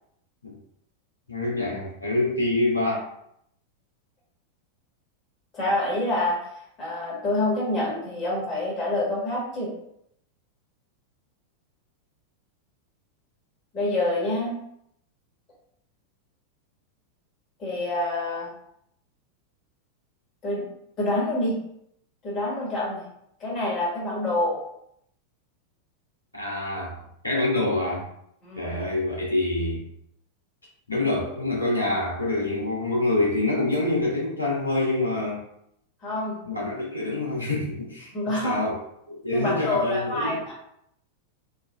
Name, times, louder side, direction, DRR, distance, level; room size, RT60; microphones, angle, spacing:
voice 1, 1.3-3.0 26.3-28.1 28.6-29.8 30.9-35.4 36.4-38.8 39.1-40.4, left 2 dB, 80° left, -4 dB, 1.0 m, -26 dB
voice 2, 5.5-6.4 6.8-9.7 13.7-14.5 17.6-18.5 20.4-20.6 21.0-21.6 22.2-23.0 23.4-24.6 28.4-28.7 36.0-36.4 38.1-38.6 39.3-40.5, left 2 dB, 35° left, -5 dB, 1.4 m, -26 dB
3.6 x 2.2 x 2.2 m, 0.74 s
figure-of-eight pair, 90°, 0 cm